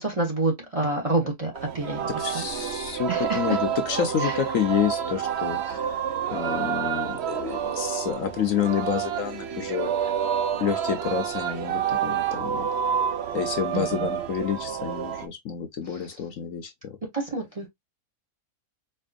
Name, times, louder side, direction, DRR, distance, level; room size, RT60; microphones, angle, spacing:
voice 1, 0.0-2.4 3.1-3.6 3.9-4.4 13.7-14.1 17.1-17.7, right 2 dB, 25° right, 1.0 m, -28 dB
Singing, 1.5-15.3, right 8 dB, 60° right, 0.7 m, -29 dB
voice 2, 2.1-6.0 6.3-10.1 10.6-12.7 13.3-17.0, left 8 dB, 65° left, 1.0 m, -29 dB
4.4 x 2.9 x 2.4 m
omnidirectional pair, 1.7 m